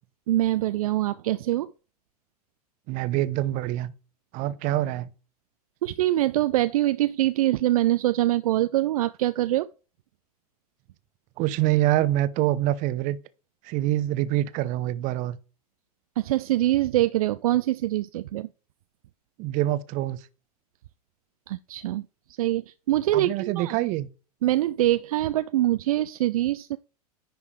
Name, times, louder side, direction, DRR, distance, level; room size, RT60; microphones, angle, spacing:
voice 1, 0.3-1.7 5.8-9.7 16.2-18.5 21.5-22.0 22.4-23.7 24.4-26.8, right 15 dB, 65° right, 0.4 m, -24 dB
voice 2, 2.9-3.9 4.3-5.1 11.4-13.2 13.6-15.4 19.4-20.2 23.1-24.1, right 14 dB, 40° right, 0.8 m, -25 dB
10.0 x 3.4 x 4.8 m
hypercardioid pair, 95°, 20 cm